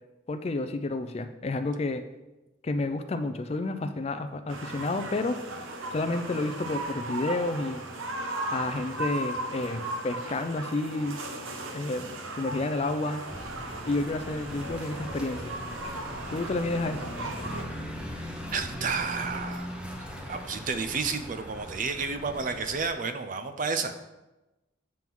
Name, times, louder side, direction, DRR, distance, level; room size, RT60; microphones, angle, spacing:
voice 1, 0.3-2.0 2.6-5.4 5.9-7.8 8.5-11.2 11.7-13.2 13.9-15.5 16.3-17.1, left 2 dB, 30° left, 9 dB, 0.4 m, -30 dB
sound 1, 4.5-17.6, right 2 dB, 80° right, 0.9 m, -37 dB
sound 2, 13.3-22.9, equal, 5° right, 0.8 m, -39 dB
voice 2, 18.5-19.7 20.2-23.9, right 5 dB, 40° right, 8 dB, 0.5 m, -31 dB
7.5 x 3.6 x 6.0 m, 1.0 s
head